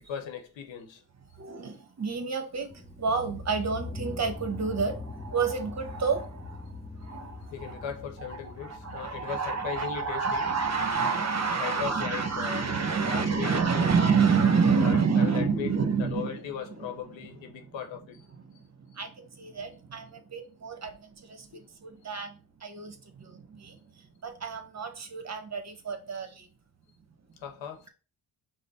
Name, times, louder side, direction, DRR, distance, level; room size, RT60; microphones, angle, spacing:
voice 1, 0.1-1.0 7.5-10.5 11.6-12.7 13.0-13.9 14.8-15.7 16.0-18.2 21.5-21.6 27.4-27.9, left 8 dB, 85° left, 0.9 m, -38 dB
voice 2, 1.4-6.7 7.0-7.8 8.3-16.4 16.8-16.9 18.4-18.6 18.9-23.8 24.2-26.5, right 5 dB, 35° right, 1.0 m, -29 dB
sound 1, 2.7-10.9, left 3 dB, 15° left, 0.9 m, -42 dB
5.1 x 2.1 x 4.0 m
cardioid pair, 65°, 45 cm